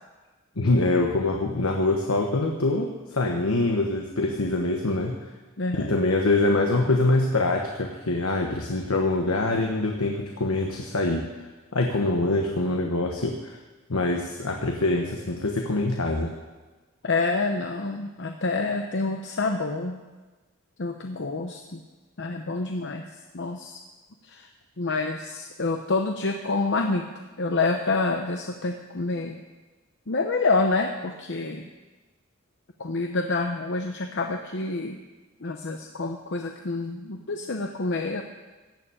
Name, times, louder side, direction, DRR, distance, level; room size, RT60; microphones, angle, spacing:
voice 1, 0.6-5.2 5.7-11.3 11.7-13.6 13.9-16.3, left 2 dB, 85° left, 2 dB, 1.2 m, -24 dB
voice 2, 5.6-5.9 17.0-20.0 20.8-21.8 22.2-23.0 23.3-23.8 24.2-24.5 24.8-27.0 27.4-29.4 30.1-31.7 32.8-35.0 35.4-38.2, left 3 dB, 55° left, 4 dB, 0.8 m, -27 dB
15.5 x 7.1 x 8.8 m, 1.2 s
head